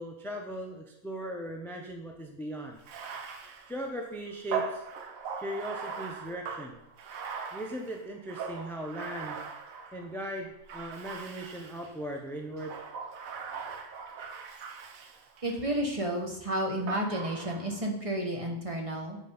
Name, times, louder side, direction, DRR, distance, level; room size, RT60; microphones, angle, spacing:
voice 1, 0.0-2.8 3.7-4.8 5.4-6.8 7.5-9.4 9.9-12.8, right 1 dB, ahead, 2 dB, 0.5 m, -38 dB
Bathtub (filling or washing), 2.8-10.1 10.7-12.0 12.5-15.7 16.9-17.8, right 5 dB, 75° right, 1.2 m, -40 dB
voice 2, 15.4-19.2, right 1 dB, 25° right, 1 dB, 1.0 m, -31 dB
7.6 x 4.1 x 5.4 m, 0.84 s
omnidirectional pair, 1.5 m